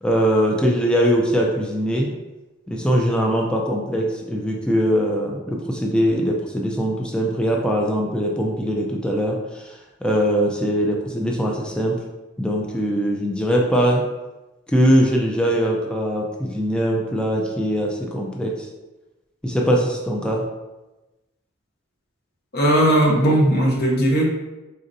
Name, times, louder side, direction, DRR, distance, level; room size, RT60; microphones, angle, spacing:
voice 1, 0.0-2.1 2.7-12.0 12.4-14.0 14.7-18.7 19.4-20.5, equal, 5° left, -1 dB, 0.4 m, -21 dB
voice 2, 22.5-24.3, right 1 dB, 50° left, -1 dB, 0.9 m, -17 dB
4.3 x 3.9 x 2.6 m, 1.1 s
head